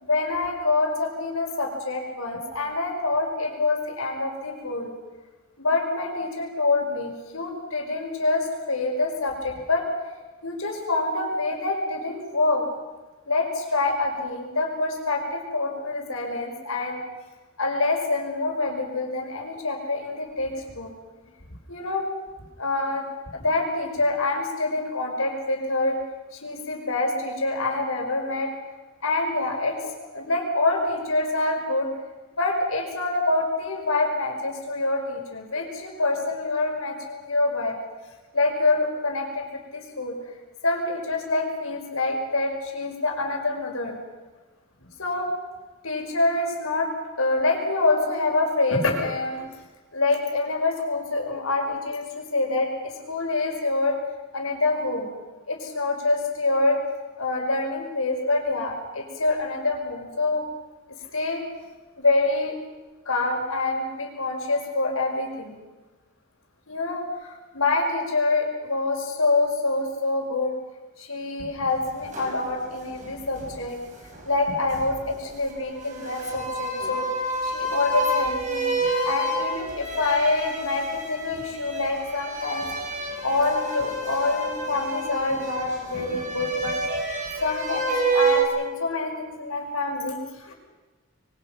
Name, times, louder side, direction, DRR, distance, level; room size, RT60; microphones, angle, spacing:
voice 1, 0.0-4.9 5.6-9.9 10.4-12.6 13.3-17.0 17.6-20.9 21.7-22.1 22.6-23.1 23.3-26.0 26.4-28.5 29.0-31.9 32.4-37.8 38.3-39.5 39.7-40.2 40.6-44.0 45.0-45.3 45.8-46.9 47.2-49.5 49.9-54.0 54.3-55.1 55.5-56.8 57.2-60.4 61.1-61.4 62.0-62.5 63.1-65.6 66.7-70.6 71.0-73.8 74.3-77.1 77.4-78.7 79.0-82.7 83.2-86.8 87.4-90.5, left 2 dB, 80° left, 2 dB, 5.6 m, -26 dB
sound 1, 71.9-74.4 74.7-88.5, right 2 dB, 35° right, 5.7 m, -29 dB
26.5 x 23.5 x 5.9 m, 1.2 s
head